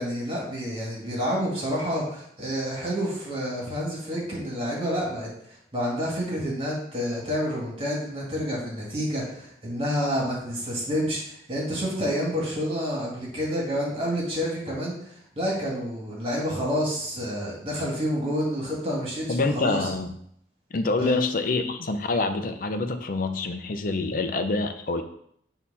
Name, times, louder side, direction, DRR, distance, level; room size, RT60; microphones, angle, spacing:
voice 1, 0.0-5.3 5.7-14.9 15.4-19.3 19.5-19.8 21.0-21.2, equal, 30° right, -3 dB, 1.9 m, -28 dB
voice 2, 19.3-20.1 20.7-25.0, left 3 dB, 50° left, 8 dB, 0.6 m, -26 dB
6.5 x 2.9 x 5.4 m, 0.69 s
head